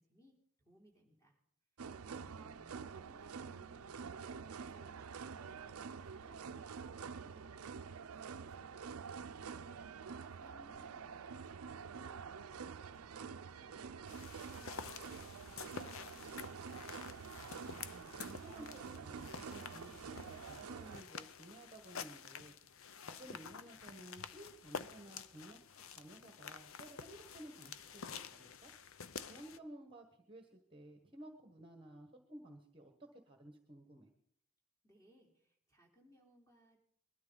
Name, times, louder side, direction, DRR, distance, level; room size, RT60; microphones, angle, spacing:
voice 1, 0.0-1.4 2.1-16.9 34.8-36.8, equal, 15° left, -1 dB, 3.7 m, -67 dB
sound 1, 1.8-21.0, right 6 dB, 90° right, 0.5 m, -48 dB
voice 2, 2.1-2.8 17.8-22.6 23.0-28.7 29.3-34.1, right 1 dB, 25° right, 5 dB, 1.3 m, -55 dB
sound 2, 7.5-16.7, equal, 35° left, 2.9 m, -72 dB
sound 3, 14.1-29.6, left 6 dB, 70° left, 0.6 m, -50 dB
21.0 x 13.0 x 4.0 m, 0.65 s
head